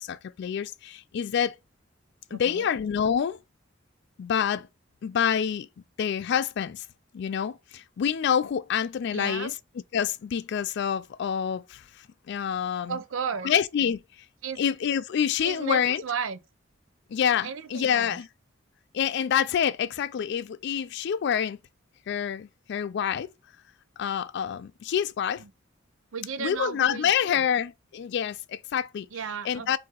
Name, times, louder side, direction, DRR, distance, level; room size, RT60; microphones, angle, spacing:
voice 1, 0.0-1.6 2.3-3.4 4.2-4.7 5.0-5.7 6.0-6.9 7.1-9.5 9.9-11.8 12.3-13.0 13.4-14.0 14.6-16.0 17.1-18.3 18.9-21.6 22.1-23.3 24.0-25.4 26.4-29.1 29.4-29.8, left 8 dB, 60° left, 0.3 m, -27 dB
voice 2, 2.3-2.7 9.1-9.5 12.9-13.5 14.4-14.6 15.4-16.4 17.4-18.2 25.4-25.5 26.1-27.4 29.1-29.8, right 6 dB, 85° right, 0.5 m, -34 dB
sound 1, 13.0-13.7, left 3 dB, 35° left, 1.0 m, -48 dB
3.8 x 2.7 x 4.1 m
head